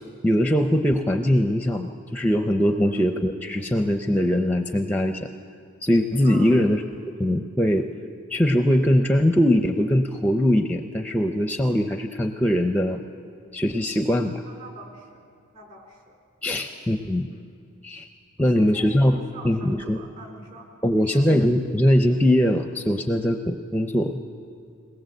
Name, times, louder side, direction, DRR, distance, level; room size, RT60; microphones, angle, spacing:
voice 1, 0.2-5.3 5.8-6.8 7.2-7.9 8.3-13.0 13.5-14.4 16.4-17.3 17.8-18.1 18.4-19.2 19.4-20.0 20.8-24.2, equal, 5° left, 6 dB, 0.5 m, -21 dB
voice 2, 6.2-6.6 14.5-15.2 15.5-16.2 16.5-16.8 17.3-17.4 18.4-20.7 20.9-21.3, right 2 dB, 40° right, 1 dB, 3.7 m, -45 dB
21.5 x 19.0 x 7.8 m, 2.4 s
head